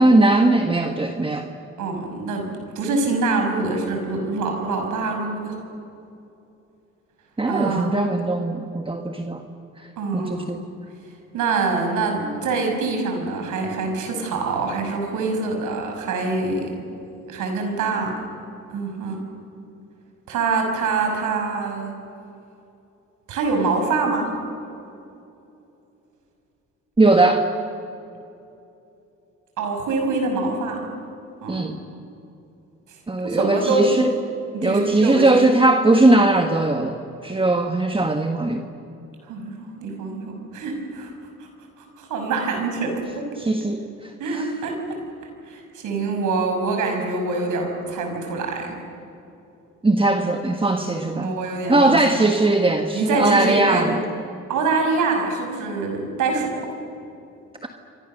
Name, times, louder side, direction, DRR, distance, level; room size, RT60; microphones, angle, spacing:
voice 1, 0.0-1.5 7.4-9.4 10.1-10.6 27.0-27.4 31.5-31.7 33.1-34.1 34.6-38.6 43.4-44.5 49.8-51.3 51.7-54.0 57.6-57.7, right 2 dB, 15° right, 5 dB, 1.6 m, -19 dB
voice 2, 1.8-2.5 2.8-5.6 7.5-8.1 10.0-10.5 11.3-16.7 17.3-18.2 18.7-19.2 20.3-21.9 23.3-24.3 29.6-30.8 31.4-31.7 32.9-33.0 33.2-34.1 34.5-35.4 39.2-41.1 41.4-41.5 41.8-43.3 44.2-45.0 45.5-48.8 50.7-52.0 52.9-54.0 54.5-56.7, right 3 dB, 85° right, 3 dB, 5.9 m, -25 dB
29.0 x 24.0 x 6.8 m, 2.8 s
cardioid pair, 90°, 30 cm